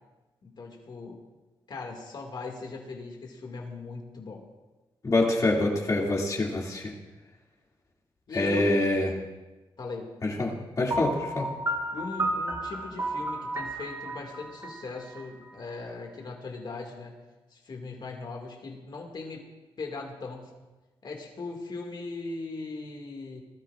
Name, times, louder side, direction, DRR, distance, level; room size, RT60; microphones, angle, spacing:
voice 1, 0.4-1.2 1.7-4.4 8.3-8.7 9.8-10.1 11.9-17.1 17.5-19.4 19.8-20.5 21.0-23.4, left 3 dB, 55° left, 1 dB, 2.2 m, -39 dB
voice 2, 5.0-6.9 8.3-9.1 10.2-11.5, left 2 dB, 35° left, -2 dB, 2.5 m, -25 dB
Piano, 10.9-15.7, right 1 dB, 30° right, 1.5 m, -33 dB
20.5 x 13.0 x 2.5 m, 1.1 s
wide cardioid pair, 110°, 9 cm